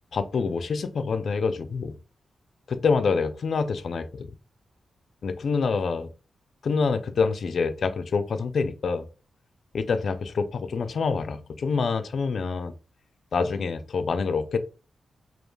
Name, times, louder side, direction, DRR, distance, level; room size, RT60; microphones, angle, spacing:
voice 1, 0.1-2.0 2.7-4.3 5.2-6.1 6.6-9.0 9.7-12.7 13.3-14.6, left 5 dB, 55° left, 0.3 m, -26 dB
2.2 x 2.2 x 3.1 m
wide cardioid pair, 160°, 0 cm